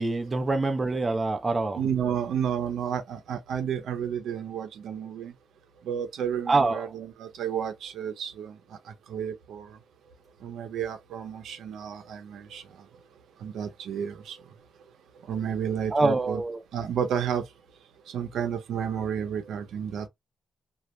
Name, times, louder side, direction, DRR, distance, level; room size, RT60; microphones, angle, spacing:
voice 1, 0.0-1.8 6.5-6.9 15.9-16.6, right 3 dB, 25° right, 0.5 m, -25 dB
voice 2, 1.8-5.3 5.8-8.6 9.1-9.8 10.4-12.6 13.4-14.4 15.3-16.4 16.7-17.4 18.1-20.1, right 8 dB, 80° right, 0.7 m, -31 dB
2.4 x 2.1 x 3.0 m
cardioid pair, 105°, 0 cm